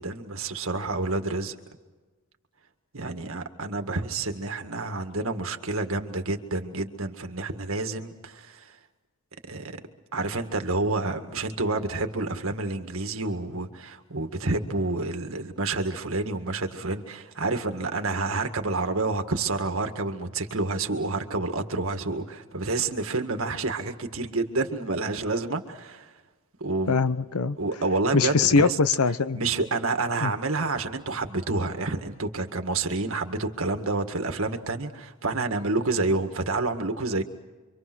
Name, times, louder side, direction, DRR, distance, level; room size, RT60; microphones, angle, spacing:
voice 1, 0.0-1.6 2.9-8.7 9.5-9.8 10.1-26.1 26.6-27.0 27.6-28.8 29.3-37.2, right 3 dB, 70° right, 6 dB, 2.0 m, -29 dB
voice 2, 26.9-27.6 28.1-29.4 30.2-30.3, left 4 dB, 90° left, 14 dB, 0.8 m, -22 dB
27.5 x 25.0 x 6.2 m, 1.3 s
head